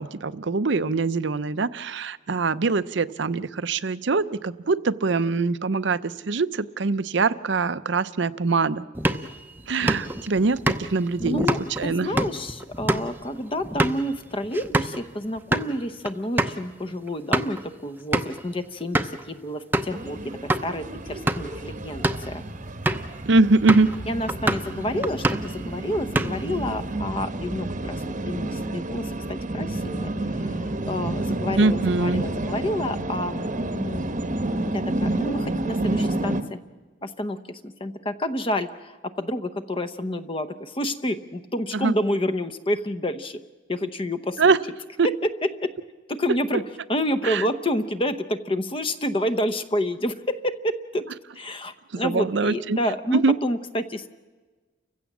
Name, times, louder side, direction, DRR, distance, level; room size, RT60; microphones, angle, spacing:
voice 1, 0.0-8.8 9.7-11.5 11.8-12.1 23.3-23.9 31.6-32.2 41.7-41.9 44.4-44.6 45.0-45.1 47.2-47.4 52.0-52.8 53.2-53.3, right 3 dB, 65° right, 15 dB, 0.6 m, -23 dB
sound 1, 8.9-15.0 15.4-15.7 16.1-16.2 16.4-16.6 17.1-17.6 18.1-18.4 18.9-19.2 19.7-20.0 20.5-20.7 21.1-21.6 21.9-22.3 22.9-23.1 23.7-24.0 24.3-24.7 25.0-25.6 25.9-26.6, right 1 dB, 10° right, 0.7 m, -26 dB
voice 2, 11.2-22.4 24.1-34.1 34.7-36.6 37.0-43.4 43.7-44.6 45.0-45.3 45.6-45.7 46.1-46.6 46.9-54.1, left 1 dB, 25° left, 11 dB, 0.8 m, -29 dB
sound 2, 19.9-36.4, right 2 dB, 40° right, 1.0 m, -30 dB
29.5 x 16.0 x 7.3 m, 1.3 s
head